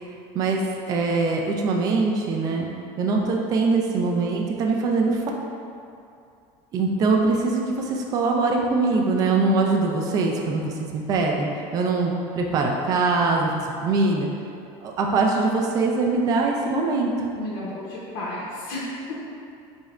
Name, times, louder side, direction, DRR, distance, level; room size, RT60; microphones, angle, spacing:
voice 1, 0.0-2.7 3.0-5.2 6.7-13.5 13.8-14.3 14.8-17.1, right 3 dB, 30° right, 0 dB, 0.3 m, -23 dB
voice 2, 17.3-19.2, left 1 dB, 70° left, -6 dB, 0.7 m, -33 dB
3.9 x 3.2 x 2.4 m, 2.5 s
cardioid pair, 155°, 12 cm